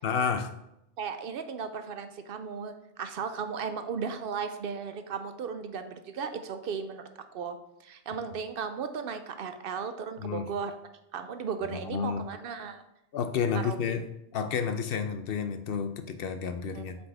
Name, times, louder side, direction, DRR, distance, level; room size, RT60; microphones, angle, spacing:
voice 1, 0.0-0.5 10.2-10.5 11.7-12.2 13.1-14.0 14.3-17.0, left 6 dB, 65° left, 8 dB, 0.7 m, -30 dB
voice 2, 1.0-7.0 7.3-10.7 11.1-12.8 13.5-13.8 16.7-16.8, right 6 dB, 60° right, 9 dB, 0.7 m, -36 dB
7.6 x 4.2 x 3.3 m, 0.83 s
omnidirectional pair, 1.2 m